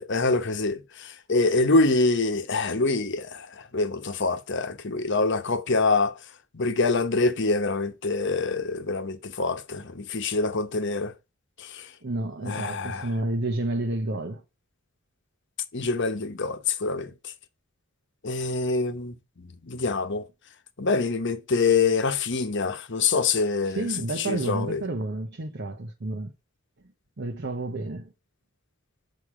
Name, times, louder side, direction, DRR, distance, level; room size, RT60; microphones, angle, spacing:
voice 1, 0.0-6.2 6.5-11.1 11.6-11.9 12.4-13.1 15.7-17.1 18.2-20.2 20.8-23.9 24.2-24.8, left 3 dB, 60° left, 1.1 m, -25 dB
voice 2, 12.0-14.4 23.7-26.3 27.2-28.1, right 2 dB, 55° right, 0.9 m, -30 dB
6.4 x 4.9 x 4.9 m
head